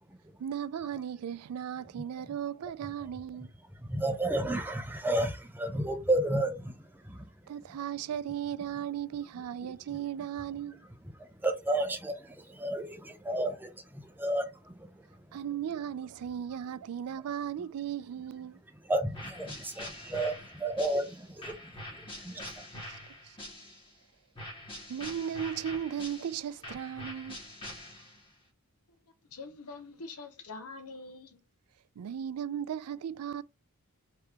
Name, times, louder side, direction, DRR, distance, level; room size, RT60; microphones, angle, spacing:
voice 1, 0.4-3.5 7.5-10.9 15.3-18.6 22.7-23.0 23.2-23.4 24.9-27.4 32.0-33.4, right 9 dB, 80° right, 0.3 m, -36 dB
voice 2, 3.8-7.3 11.2-14.9 18.8-21.7 22.0-22.6, right 1 dB, 10° right, 0.6 m, -32 dB
sound 1, 19.1-23.9 24.4-28.3, left 1 dB, 25° left, 1.6 m, -45 dB
voice 3, 29.3-31.4, left 3 dB, 90° left, 1.0 m, -44 dB
3.4 x 3.3 x 2.9 m
head